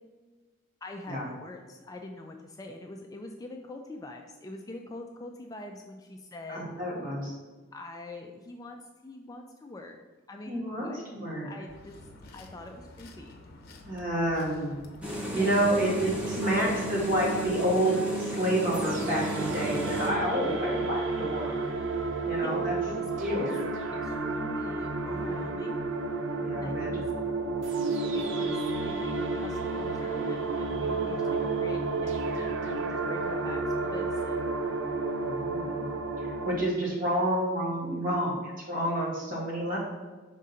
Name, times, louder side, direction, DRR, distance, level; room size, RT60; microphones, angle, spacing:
voice 1, 0.8-6.6 7.7-10.0 10.3-11.0 11.4-12.0 12.3-13.4 15.3-16.1 16.4-16.5 16.9-18.1 20.4-20.6 22.4-23.5 23.9-25.8 26.6-27.1 28.1-34.5, left 2 dB, 20° left, 3 dB, 0.3 m, -44 dB
voice 2, 6.5-7.3 10.5-11.5 13.9-14.8 15.3-21.5 22.3-22.7 23.2-23.5 26.4-27.0 31.1-31.3 35.2-35.9 36.2-39.8, right 1 dB, 45° right, -4 dB, 1.9 m, -29 dB
sound 1, 11.7-17.7, left 2 dB, 50° left, 0.7 m, -50 dB
sound 2, 15.0-20.1, right 1 dB, 5° right, 0.8 m, -34 dB
sound 3, 18.7-36.5, right 3 dB, 65° right, 0.6 m, -31 dB
5.1 x 3.7 x 5.6 m, 1.3 s
head